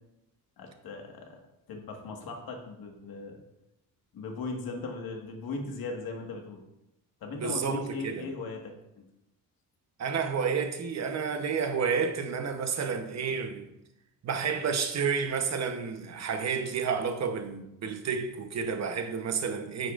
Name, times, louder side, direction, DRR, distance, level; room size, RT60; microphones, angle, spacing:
voice 1, 0.6-1.4 1.7-3.4 4.1-6.6 7.2-8.7, left 3 dB, 80° left, 1.7 m, -38 dB
voice 2, 7.4-8.3 10.0-13.7 14.2-19.9, right 6 dB, 50° right, 1.0 m, -30 dB
9.2 x 8.4 x 2.5 m
cardioid pair, 150°, 35 cm